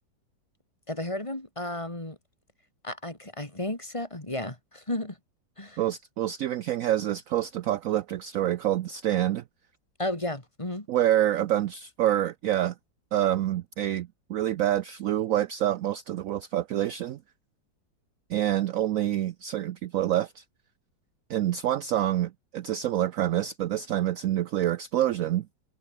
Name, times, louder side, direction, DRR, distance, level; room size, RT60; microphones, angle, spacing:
voice 1, 0.9-2.2 2.8-5.2 5.6-5.8 10.0-10.9, left 1 dB, 15° left, 2.8 m, -33 dB
voice 2, 5.8-9.4 10.9-12.7 13.1-17.2 18.3-20.4 21.3-25.5, right 12 dB, 70° right, 0.8 m, -27 dB
omnidirectional pair, 2.0 m